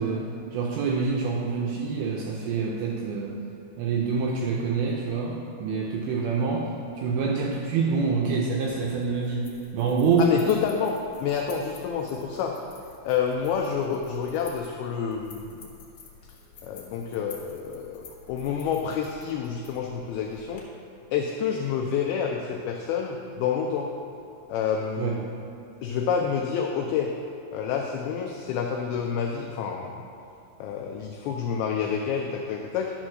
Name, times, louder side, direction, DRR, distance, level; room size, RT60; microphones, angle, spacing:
voice 1, 0.0-3.4 3.8-6.7 7.0-10.4 25.0-25.2, right 4 dB, 80° right, -1 dB, 2.2 m, -26 dB
sound 1, 8.6-20.6, left 5 dB, 65° left, 2.0 m, -50 dB
voice 2, 10.2-12.6 13.0-15.6 16.6-20.6 21.1-23.9 24.5-25.3 25.8-27.1 27.5-30.0 30.6-32.9, left 7 dB, 90° left, 2 dB, 2.2 m, -28 dB
11.0 x 4.2 x 6.2 m, 2.7 s
omnidirectional pair, 5.0 m